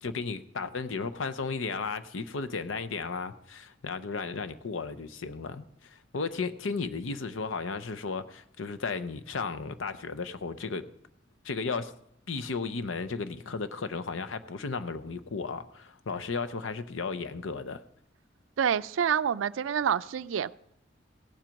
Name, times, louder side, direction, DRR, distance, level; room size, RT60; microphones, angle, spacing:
voice 1, 0.0-5.7 5.9-10.9 11.4-11.9 12.3-17.8, left 4 dB, 85° left, 11 dB, 0.7 m, -34 dB
voice 2, 18.6-20.5, right 8 dB, 80° right, 16 dB, 0.4 m, -27 dB
16.5 x 7.5 x 5.2 m, 0.76 s
head